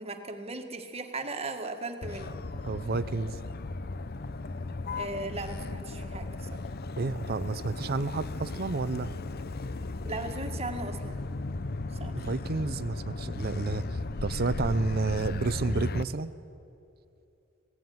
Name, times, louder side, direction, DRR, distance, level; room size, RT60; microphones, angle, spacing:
voice 1, 0.0-2.3 5.0-6.6 10.0-11.2 12.0-12.1, right 2 dB, 30° right, 6 dB, 1.7 m, -37 dB
Motor vehicle (road), 2.0-16.0, left 3 dB, 50° left, 0.7 m, -36 dB
voice 2, 2.6-3.4 7.0-9.1 12.1-16.3, right 3 dB, 50° right, 13 dB, 0.6 m, -31 dB
25.5 x 17.5 x 9.4 m, 2.7 s
head